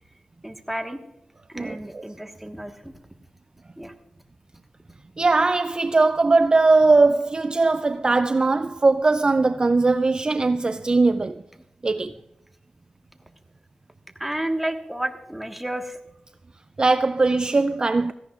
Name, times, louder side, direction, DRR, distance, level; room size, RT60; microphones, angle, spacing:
voice 1, 0.4-1.0 1.5-2.9 3.8-3.9 12.0-12.2 14.2-16.0, right 1 dB, 5° right, 1.4 m, -31 dB
voice 2, 1.6-2.0 5.2-11.4 11.8-12.1 16.8-18.1, right 3 dB, 35° right, 0.4 m, -20 dB
17.0 x 14.5 x 2.4 m
wide cardioid pair, 75°, 3 cm